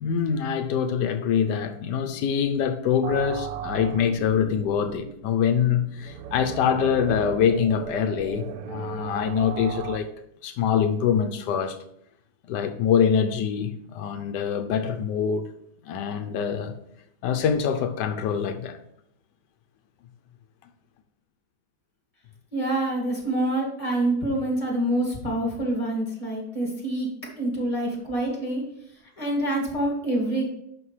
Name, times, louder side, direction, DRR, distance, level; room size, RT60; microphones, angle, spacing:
voice 1, 0.0-10.1 10.4-11.8 12.5-15.5 15.8-16.7 17.2-18.8, left 7 dB, 85° left, 1.3 m, -24 dB
sound 1, 3.0-10.0, right 8 dB, 70° right, 1.1 m, -36 dB
voice 2, 22.5-27.1 27.4-28.6 29.2-30.5, right 1 dB, 20° left, 2.5 m, -26 dB
11.0 x 5.6 x 3.2 m
omnidirectional pair, 1.8 m